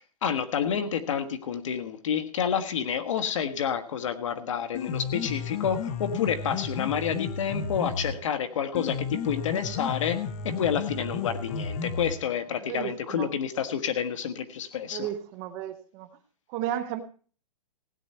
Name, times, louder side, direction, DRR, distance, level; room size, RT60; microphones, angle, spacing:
voice 1, 0.0-15.1, left 8 dB, 50° left, 10 dB, 1.5 m, -29 dB
Piano, 4.6-12.5, left 5 dB, 25° left, 0.8 m, -33 dB
voice 2, 12.6-13.3 14.8-16.1 16.5-17.0, right 11 dB, 20° right, 9 dB, 0.7 m, -34 dB
16.5 x 9.0 x 4.4 m, 0.41 s
hypercardioid pair, 165°, 20 cm